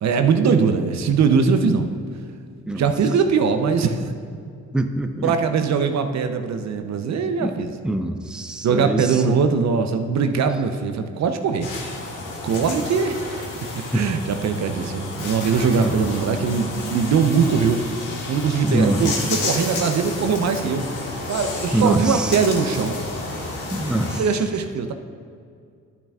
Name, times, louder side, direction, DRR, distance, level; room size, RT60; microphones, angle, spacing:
voice 1, 0.0-1.9 2.8-4.1 5.2-7.8 8.6-11.7 12.4-13.2 13.9-17.8 18.3-20.8 21.3-23.0 24.1-24.9, right 5 dB, 60° right, 7 dB, 0.7 m, -21 dB
voice 2, 4.7-5.3 7.4-7.5 7.8-9.0 9.2-9.3 13.9-14.0 15.8-16.0 18.6-19.0 21.7-22.3 23.7-24.2, right 2 dB, 5° right, 6 dB, 0.5 m, -23 dB
sound 1, 11.6-24.2, left 2 dB, 85° left, 1.6 m, -31 dB
10.5 x 8.9 x 2.4 m, 2.3 s
supercardioid pair, 65°, 31 cm